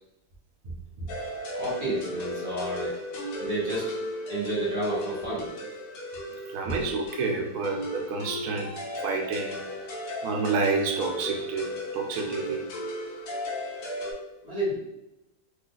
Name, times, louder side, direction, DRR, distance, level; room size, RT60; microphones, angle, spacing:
sound 1, 1.1-14.1, left 1 dB, 85° left, 1.2 m, -36 dB
voice 1, 1.5-2.9 3.4-3.9 4.3-5.5 6.7-6.8 14.4-14.8, right 1 dB, 30° right, -7 dB, 1.4 m, -30 dB
voice 2, 6.5-8.7 9.0-9.6 10.2-12.6, right 4 dB, 75° right, 1 dB, 1.0 m, -29 dB
3.9 x 3.1 x 2.3 m, 0.92 s
omnidirectional pair, 1.5 m